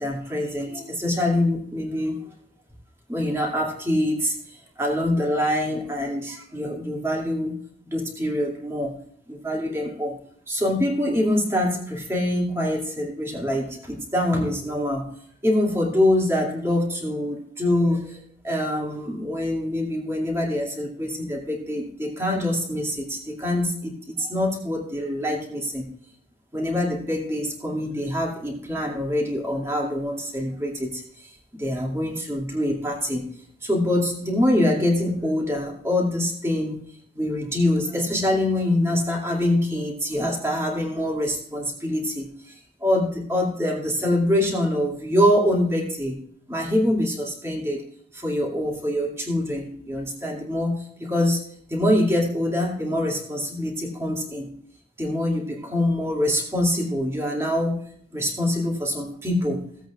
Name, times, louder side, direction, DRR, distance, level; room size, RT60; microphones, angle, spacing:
voice 1, 0.0-2.2 3.1-4.4 4.8-7.6 7.9-8.9 9.3-10.2 10.5-15.1 15.4-18.2 18.4-25.9 26.5-33.2 33.6-36.8 37.1-46.2 46.5-47.8 48.1-51.4 51.7-54.5 55.0-57.8 58.1-59.6, left 1 dB, 15° right, -1 dB, 2.4 m, -25 dB
17.5 x 8.2 x 2.4 m, 0.66 s
head